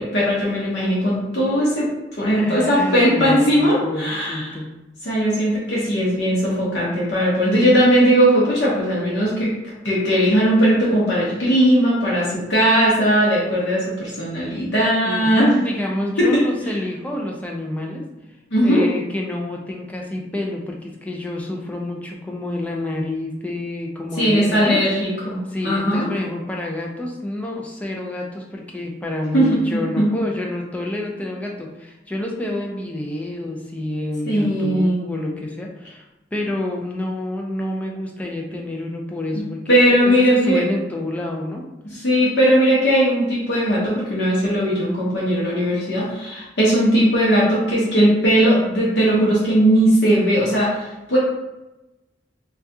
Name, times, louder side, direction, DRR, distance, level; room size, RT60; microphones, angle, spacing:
voice 1, 0.0-1.9 2.2-4.5 5.0-9.5 9.8-15.5 16.2-16.4 18.5-18.8 24.2-26.1 29.3-29.6 30.0-30.1 34.3-35.0 39.7-40.6 41.8-51.2, equal, 85° left, -6 dB, 0.8 m, -18 dB
voice 2, 2.3-4.7 15.0-18.1 18.6-24.8 25.5-36.1 36.3-39.8 40.0-41.6 41.9-42.1, left 1 dB, 10° left, 0 dB, 0.4 m, -28 dB
2.7 x 2.3 x 3.5 m, 0.98 s
head